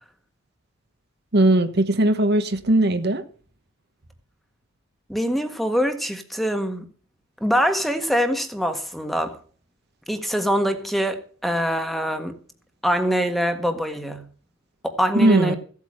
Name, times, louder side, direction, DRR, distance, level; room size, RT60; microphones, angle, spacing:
voice 1, 1.3-3.2 15.1-15.5, right 1 dB, 50° right, 1.3 m, -19 dB
voice 2, 5.1-6.9 7.4-9.4 10.1-12.4 12.8-14.2 14.8-15.6, equal, ahead, 1.6 m, -24 dB
16.5 x 8.4 x 6.4 m
head